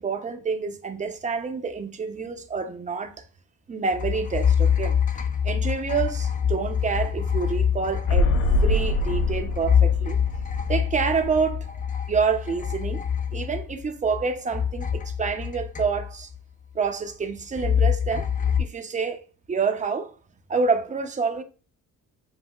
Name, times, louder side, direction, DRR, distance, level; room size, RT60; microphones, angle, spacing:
voice 1, 0.0-3.1 3.7-5.0 5.4-8.4 8.6-10.2 10.7-11.7 12.1-13.0 13.3-16.3 16.7-18.3 18.6-19.2 19.5-20.1 20.5-21.4, right 5 dB, 25° right, 0.5 m, -27 dB
sound 1, 3.9-14.2 14.5-16.4 17.6-18.6, left 8 dB, 25° left, 0.4 m, -25 dB
sound 2, 8.1-11.8 12.1-12.2, left 1 dB, 85° left, 0.6 m, -26 dB
7.3 x 2.8 x 2.3 m
cardioid pair, 130°, 33 cm